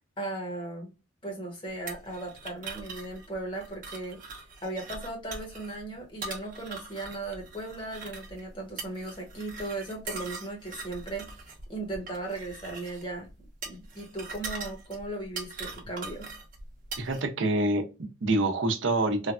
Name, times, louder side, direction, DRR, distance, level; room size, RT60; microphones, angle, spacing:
voice 1, 0.2-0.9 1.2-4.2 4.6-13.3 13.7-16.3, right 2 dB, 25° left, 0.9 m, -37 dB
sound 1, 1.9-17.2, right 3 dB, 45° right, 0.7 m, -42 dB
voice 2, 17.0-19.3, right 2 dB, 85° right, 0.6 m, -27 dB
3.2 x 2.1 x 2.4 m
head